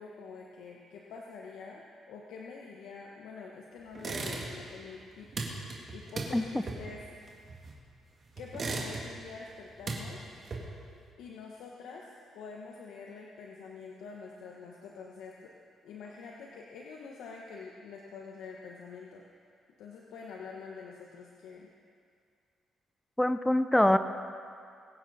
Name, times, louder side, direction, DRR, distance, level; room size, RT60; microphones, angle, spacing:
voice 1, 0.0-5.3 5.9-7.1 8.4-10.3 11.2-15.5 15.8-19.2 19.8-21.7, left 5 dB, 85° left, -1 dB, 1.1 m, -46 dB
sound 1, 4.0-4.8 5.0-7.9 8.4-9.3 9.6-10.9, right 3 dB, 45° right, 2.4 m, -37 dB
voice 2, 23.2-24.0, left 1 dB, 5° left, 10 dB, 0.5 m, -24 dB
22.0 x 9.0 x 4.2 m, 2.3 s
cardioid pair, 90°, 0 cm